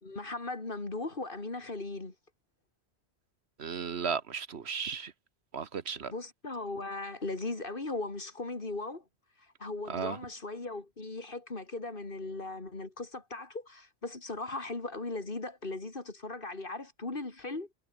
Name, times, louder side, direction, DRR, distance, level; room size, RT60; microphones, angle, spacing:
voice 1, 0.0-2.1 6.1-9.0 9.6-17.7, left 2 dB, 50° left, 2.9 m, -38 dB
voice 2, 3.6-5.1 5.5-6.1 9.9-10.2, right 6 dB, 70° right, 1.4 m, -35 dB
omnidirectional pair, 1.1 m